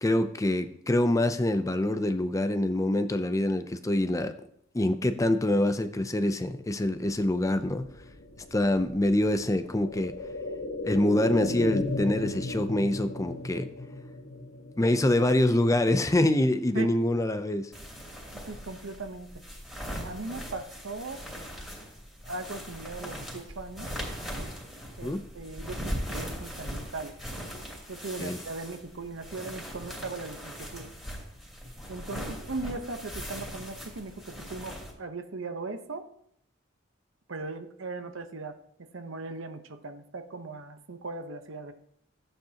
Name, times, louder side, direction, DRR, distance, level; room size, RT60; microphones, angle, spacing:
voice 1, 0.0-4.3 4.7-7.9 8.5-10.2 10.8-13.7 14.8-17.7 25.0-25.2 28.2-28.4, left 1 dB, 15° left, 10 dB, 0.5 m, -25 dB
sound 1, 6.9-16.6 17.0-17.1, left 1 dB, 75° left, 1.6 m, -37 dB
sound 2, 17.7-34.9, equal, ahead, 2.9 m, -40 dB
voice 2, 18.5-19.3 20.0-21.2 22.2-23.9 25.0-27.1 27.9-30.9 31.9-36.1 37.3-38.6 38.9-41.7, right 3 dB, 75° right, 8 dB, 1.0 m, -38 dB
14.0 x 9.0 x 2.9 m, 0.70 s
head